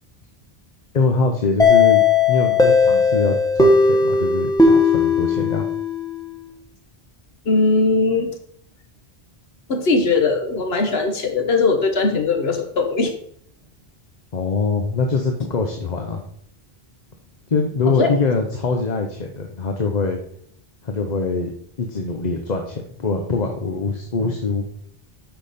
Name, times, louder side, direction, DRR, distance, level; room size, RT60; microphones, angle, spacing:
voice 1, 0.9-5.7 14.3-16.2 17.5-20.2 20.8-21.5 21.8-24.7, left 4 dB, 45° left, 3 dB, 0.9 m, -23 dB
sound 1, 1.6-6.3, left 4 dB, 5° left, 1.1 m, -16 dB
voice 2, 7.4-8.3 9.7-13.1 17.9-18.1, left 3 dB, 80° left, 4 dB, 1.4 m, -19 dB
8.5 x 5.8 x 4.2 m, 0.64 s
omnidirectional pair, 1.0 m